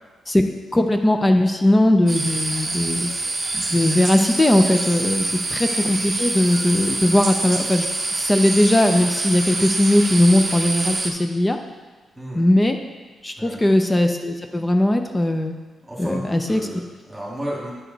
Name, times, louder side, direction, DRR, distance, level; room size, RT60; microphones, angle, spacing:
voice 1, 0.7-3.1 3.7-7.9 8.2-11.6 12.3-12.8 13.2-15.5 16.0-16.6, left 1 dB, 15° left, 5 dB, 0.6 m, -19 dB
sound 1, 2.1-11.1, right 2 dB, 25° right, 0.8 m, -26 dB
voice 2, 15.8-17.7, equal, 10° right, -4 dB, 2.1 m, -33 dB
9.9 x 4.9 x 4.0 m, 1.3 s
cardioid pair, 130°, 0 cm